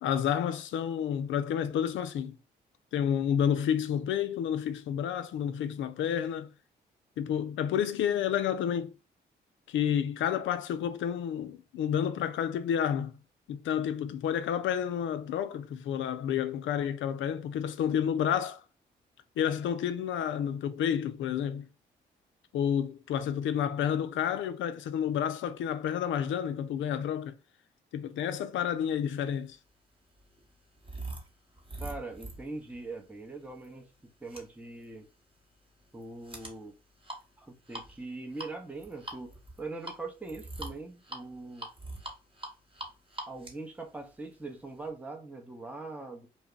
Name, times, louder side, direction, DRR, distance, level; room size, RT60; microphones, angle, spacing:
voice 1, 0.0-2.4 2.9-6.5 7.2-8.9 9.7-13.1 13.5-18.6 19.4-21.7 22.5-27.4 27.9-29.6, left 9 dB, 65° left, 0.4 m, -30 dB
sound 1, 29.2-44.9, right 2 dB, 25° right, 1.0 m, -45 dB
voice 2, 31.8-35.1 35.9-36.7 37.4-41.7 43.3-46.3, right 3 dB, 5° right, 0.7 m, -42 dB
2.2 x 2.1 x 3.6 m
hypercardioid pair, 45°, 21 cm